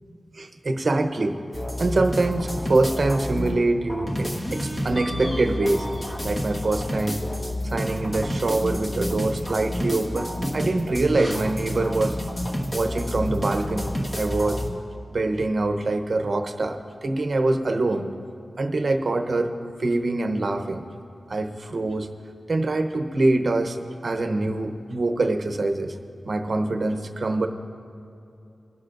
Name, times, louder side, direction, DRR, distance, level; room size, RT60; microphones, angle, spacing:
voice 1, 0.3-1.4 1.8-5.9 6.2-7.3 7.6-12.2 12.7-14.6 15.1-18.1 18.6-19.5 19.8-20.8 21.3-22.1 22.5-23.8 24.0-26.0 26.2-27.5, right 2 dB, 50° right, 6 dB, 0.9 m, -24 dB
sound 1, 1.5-3.6 3.9-14.7, equal, 20° left, 1.4 m, -29 dB
22.5 x 11.5 x 2.6 m, 2.8 s
wide cardioid pair, 110°, 0 cm